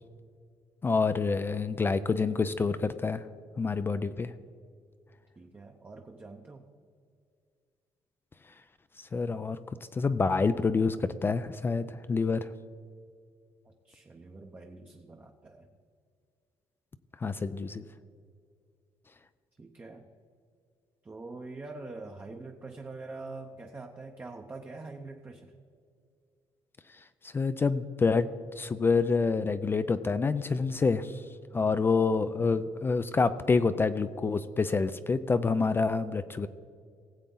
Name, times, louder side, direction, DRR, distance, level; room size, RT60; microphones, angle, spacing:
voice 1, 0.8-3.3 3.6-4.3 9.0-9.6 9.9-12.5 17.2-17.8 27.2-28.3 28.6-31.2 31.5-36.5, left 4 dB, 20° left, 12 dB, 0.3 m, -27 dB
voice 2, 5.4-6.7 13.6-15.7 19.6-20.1 21.0-25.5 31.5-31.8, right 3 dB, 20° right, 2 dB, 0.7 m, -44 dB
18.5 x 8.1 x 3.8 m, 2.2 s
cardioid pair, 160°, 11 cm